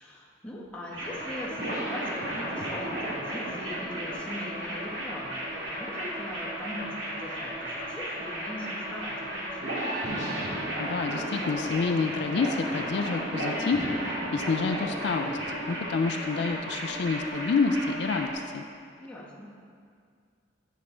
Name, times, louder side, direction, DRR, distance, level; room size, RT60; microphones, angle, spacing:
voice 1, 0.0-9.8 19.0-19.5, left 1 dB, 5° left, -6 dB, 1.2 m, -41 dB
sound 1, 0.9-18.3, right 1 dB, 80° right, 2.0 m, -33 dB
voice 2, 10.8-15.4 15.7-18.6, left 4 dB, 60° left, 6 dB, 0.3 m, -28 dB
8.2 x 6.4 x 4.3 m, 2.2 s
head